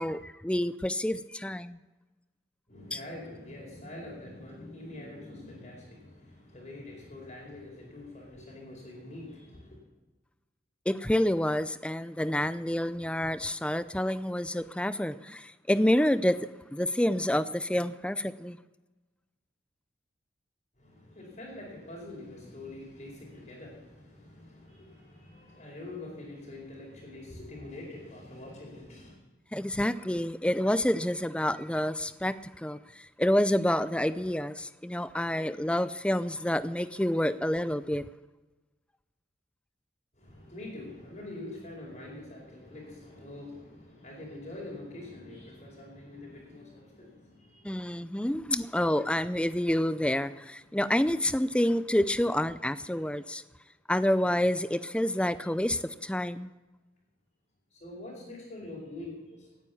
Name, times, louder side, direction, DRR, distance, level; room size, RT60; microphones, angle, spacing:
voice 1, 0.0-1.8 2.9-3.0 10.9-16.4 16.7-18.6 29.5-38.0 47.6-53.4 53.9-56.5, left 1 dB, 5° left, 15 dB, 0.4 m, -28 dB
voice 2, 2.7-9.8 20.8-29.2 40.1-48.3 50.7-50.8 57.7-59.5, left 2 dB, 40° left, -2 dB, 4.6 m, -45 dB
18.5 x 9.4 x 7.1 m, 1.2 s
head